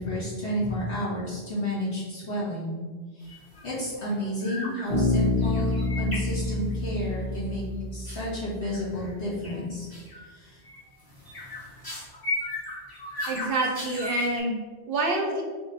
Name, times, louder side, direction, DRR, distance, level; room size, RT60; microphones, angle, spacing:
voice 1, 0.0-2.8 3.1-3.3 3.6-7.6 7.9-9.9 10.3-10.6, equal, 70° left, -9 dB, 1.9 m, -31 dB
sound 1, 3.3-3.6 3.9-4.2 4.4-4.9 5.2-6.9 8.1-8.2 8.7-9.1 9.4-9.6 9.9-10.2 10.6-14.4, left 2 dB, 20° left, 1.1 m, -36 dB
Bass guitar, 4.9-8.6, left 2 dB, 45° left, 1.2 m, -27 dB
voice 2, 13.3-15.4, right 2 dB, 60° right, 1 dB, 0.7 m, -27 dB
3.5 x 2.9 x 4.0 m, 1.4 s
omnidirectional pair, 1.1 m